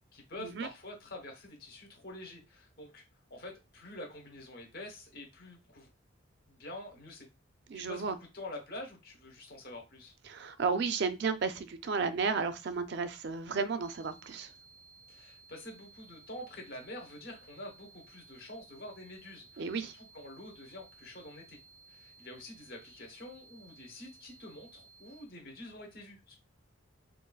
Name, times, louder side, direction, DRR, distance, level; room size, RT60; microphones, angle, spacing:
voice 1, 0.1-3.0 3.3-5.9 6.5-7.3 7.7-10.1 15.1-21.6 21.9-26.3, left 1 dB, 45° left, 1.1 m, -47 dB
voice 2, 7.7-8.2 10.3-14.5 19.6-19.9, right 5 dB, 55° right, 0.4 m, -33 dB
sound 1, 13.8-25.2, right 4 dB, 5° left, 0.8 m, -58 dB
4.6 x 2.5 x 2.3 m
head